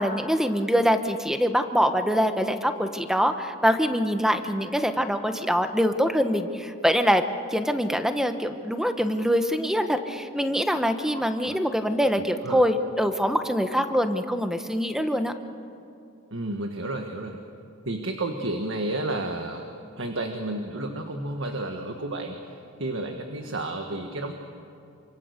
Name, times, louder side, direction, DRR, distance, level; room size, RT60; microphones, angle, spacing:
voice 1, 0.0-7.2 7.5-15.3, equal, ahead, 7 dB, 1.1 m, -24 dB
voice 2, 11.1-11.6 12.1-12.7 16.3-17.4 17.9-19.6 20.0-24.3, right 2 dB, 65° right, 4 dB, 1.7 m, -32 dB
27.5 x 25.5 x 6.7 m, 2.7 s
head